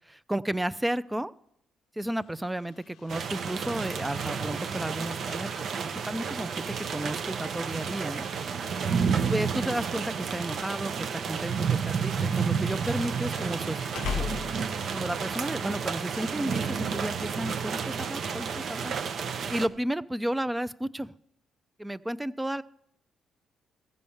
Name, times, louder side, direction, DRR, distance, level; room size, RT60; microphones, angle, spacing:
voice 1, 0.1-1.3 2.0-8.3 9.2-14.3 14.9-18.9 19.5-21.1 21.8-22.6, right 1 dB, 10° right, 16 dB, 0.4 m, -33 dB
sound 1, 2.2-15.0, left 7 dB, 75° left, 0.5 m, -44 dB
sound 2, 3.1-19.7, right 6 dB, 60° right, 0.6 m, -31 dB
15.0 x 5.3 x 7.1 m, 0.74 s
cardioid pair, 90°, 0 cm